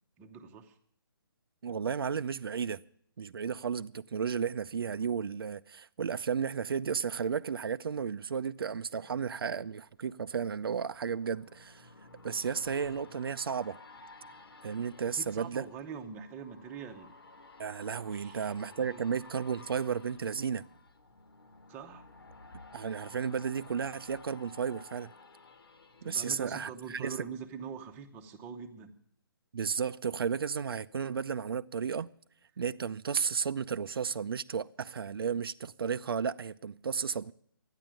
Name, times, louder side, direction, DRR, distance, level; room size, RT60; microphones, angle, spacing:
voice 1, 0.2-0.8 8.9-9.0 15.2-17.1 18.1-19.0 21.7-22.0 26.0-28.9, right 6 dB, 15° right, 0.8 m, -44 dB
voice 2, 1.6-2.8 3.2-11.9 12.2-13.8 14.6-15.6 17.6-20.6 22.7-25.1 26.0-27.2 29.5-32.1 32.6-37.3, right 6 dB, 75° right, 0.5 m, -33 dB
sound 1, 9.6-27.2 27.7-27.8, left 3 dB, 80° left, 1.6 m, -54 dB
12.5 x 9.9 x 9.0 m
hypercardioid pair, 165°, 12 cm